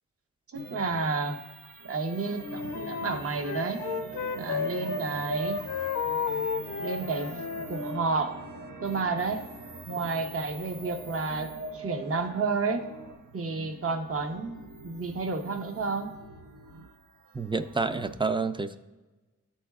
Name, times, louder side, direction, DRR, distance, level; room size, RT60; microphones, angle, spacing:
voice 1, 0.5-1.4 1.8-3.8 4.3-5.6 6.8-8.4 8.8-9.5 9.9-12.9 13.3-16.1, right 4 dB, 45° right, 6 dB, 0.7 m, -31 dB
sound 1, 0.5-18.1, right 3 dB, 90° right, 0.7 m, -46 dB
Wind instrument woodwind instrument, 2.4-5.0 5.3-8.0, left 5 dB, 65° left, 0.6 m, -33 dB
sound 2, 3.5-13.1, right 3 dB, 65° right, 2.2 m, -45 dB
voice 2, 17.3-18.8, right 4 dB, 15° right, 10 dB, 0.3 m, -29 dB
11.5 x 4.2 x 2.3 m, 1.1 s
wide cardioid pair, 70°, 31 cm